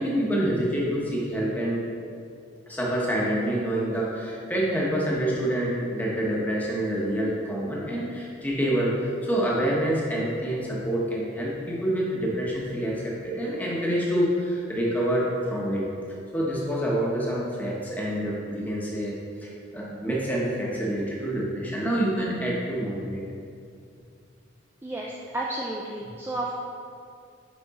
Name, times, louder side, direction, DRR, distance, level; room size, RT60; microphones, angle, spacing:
voice 1, 0.0-1.8 2.7-15.9 16.3-19.1 19.4-23.2, right 1 dB, 10° left, -5 dB, 1.0 m, -27 dB
voice 2, 24.8-26.6, right 1 dB, 10° right, -3 dB, 0.4 m, -32 dB
6.9 x 5.2 x 3.7 m, 2.4 s
head